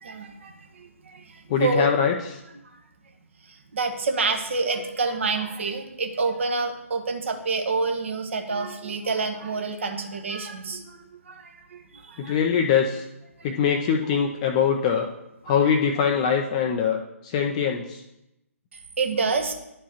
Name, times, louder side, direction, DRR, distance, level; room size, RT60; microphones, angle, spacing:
voice 1, 0.0-1.9 3.5-11.0 11.3-12.4 13.4-13.5 15.5-15.7 19.0-19.5, right 4 dB, 55° right, 4 dB, 1.2 m, -28 dB
voice 2, 1.5-2.4 12.2-13.0 13.4-15.1 15.4-17.0 17.2-18.0, left 7 dB, 25° left, 2 dB, 0.5 m, -23 dB
11.0 x 4.6 x 2.9 m, 0.88 s
figure-of-eight pair, 135°, 8 cm